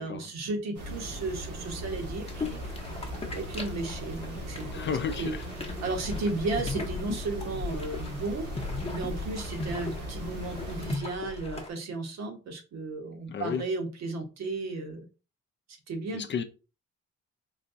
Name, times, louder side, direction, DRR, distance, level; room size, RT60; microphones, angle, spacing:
voice 1, 0.0-2.6 3.3-4.8 5.2-5.3 5.6-8.5 8.9-15.0 15.9-16.3, right 3 dB, 60° right, 0.9 m, -34 dB
sound 1, 0.7-10.9, equal, 85° right, 1.3 m, -39 dB
sound 2, 2.3-11.7, left 3 dB, 20° left, 0.7 m, -38 dB
voice 2, 4.7-5.5 13.3-13.6 16.1-16.4, left 6 dB, 40° left, 0.4 m, -32 dB
3.9 x 2.2 x 2.6 m
cardioid pair, 90°, 30 cm